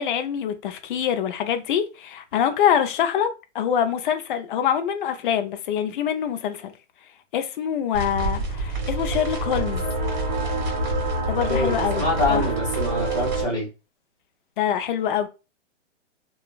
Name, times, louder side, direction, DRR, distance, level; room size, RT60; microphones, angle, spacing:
voice 1, 0.0-3.3 3.5-6.7 7.3-9.8 11.3-12.0 12.3-12.5 14.6-15.3, left 9 dB, 45° left, 0.4 m, -24 dB
sound 1, 7.9-13.4, right 2 dB, 35° right, 1.6 m, -26 dB
voice 2, 11.5-13.7, left 2 dB, 10° left, 1.3 m, -25 dB
2.9 x 2.3 x 2.2 m
hypercardioid pair, 140°, 37 cm